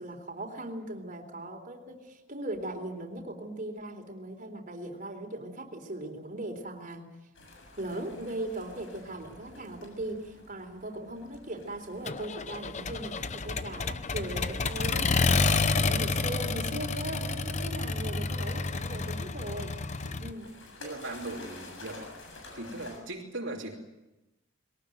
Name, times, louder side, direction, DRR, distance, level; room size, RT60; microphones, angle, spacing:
voice 1, 0.0-7.1 7.8-19.8 20.2-20.5, right 1 dB, 40° right, 3 dB, 3.8 m, -39 dB
sound 1, 7.3-23.0, left 2 dB, 60° left, 7.4 m, -50 dB
Accelerating revving vroom, 12.1-20.3, left 3 dB, 35° left, 0.8 m, -29 dB
voice 2, 20.8-22.1 22.5-23.7, right 2 dB, 65° right, -2 dB, 3.0 m, -39 dB
22.5 x 19.0 x 9.4 m, 0.99 s
head